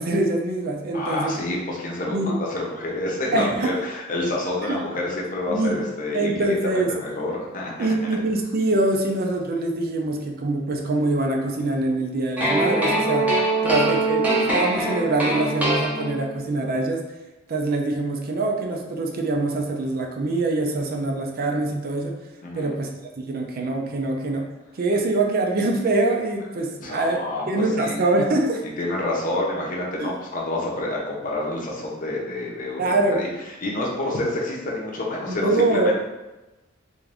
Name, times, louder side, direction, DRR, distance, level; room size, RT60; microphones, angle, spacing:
voice 1, 0.0-1.3 2.1-2.4 3.3-3.7 4.6-4.8 5.5-5.8 6.1-6.9 7.8-13.3 13.6-17.0 17.5-22.1 22.5-22.9 23.3-24.4 24.8-27.2 27.5-28.6 30.0-30.1 32.8-33.2 35.3-36.0, right 2 dB, 45° right, 1 dB, 0.4 m, -24 dB
voice 2, 0.9-6.3 7.0-7.9 13.7-13.9 22.4-22.7 26.8-27.4 27.8-28.0 28.8-33.3 33.6-36.0, left 2 dB, 40° left, -3 dB, 0.7 m, -28 dB
sound 1, 12.4-16.5, right 1 dB, 5° right, 0.6 m, -23 dB
3.5 x 2.6 x 3.4 m, 1.1 s
head